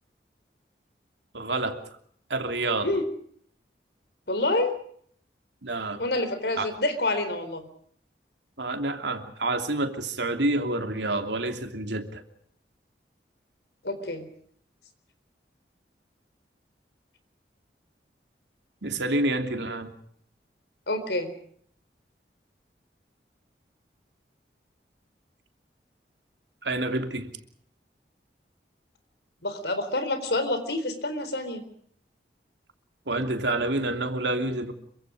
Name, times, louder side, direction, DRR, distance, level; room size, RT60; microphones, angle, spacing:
voice 1, 1.3-1.8 2.3-2.9 5.6-6.0 6.6-6.7 8.6-12.2 18.8-19.9 26.6-27.3 33.1-34.7, right 2 dB, 85° right, 5 dB, 3.0 m, -28 dB
voice 2, 4.3-4.7 6.0-7.7 13.8-14.3 20.9-21.3 29.4-31.6, left 2 dB, 75° left, 10 dB, 4.1 m, -27 dB
27.0 x 24.0 x 5.1 m, 0.63 s
head